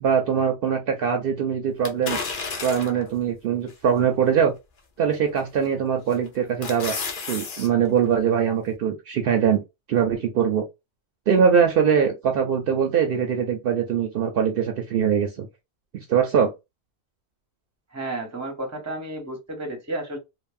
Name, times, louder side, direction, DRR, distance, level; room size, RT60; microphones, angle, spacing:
voice 1, 0.0-2.2 2.6-4.5 5.0-7.0 7.3-9.6 9.9-10.6 11.3-15.5 15.9-16.5, right 7 dB, 65° right, 0.7 m, -22 dB
sound 1, 1.8-3.1 3.7-3.8 5.4-5.7 6.1-7.7 8.0-8.1, left 4 dB, 55° left, 0.8 m, -31 dB
voice 2, 17.9-20.2, right 1 dB, 15° right, 0.7 m, -32 dB
3.3 x 2.0 x 2.4 m
omnidirectional pair, 1.1 m